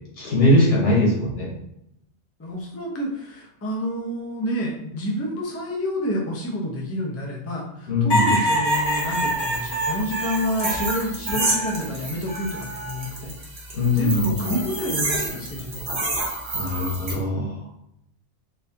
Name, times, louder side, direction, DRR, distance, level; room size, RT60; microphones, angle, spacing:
voice 1, 0.2-1.5 7.9-8.3 13.7-14.3 16.5-17.5, left 1 dB, 85° left, -4 dB, 1.6 m, -20 dB
voice 2, 2.4-13.3 13.9-15.9, equal, 20° left, -2 dB, 0.4 m, -29 dB
sound 1, 8.1-11.8 12.3-13.1 14.4-14.9, equal, 40° left, 1.6 m, -26 dB
sound 2, 8.7-17.1, right 2 dB, 65° right, 1.2 m, -30 dB
4.0 x 2.5 x 2.7 m, 0.79 s
omnidirectional pair, 1.2 m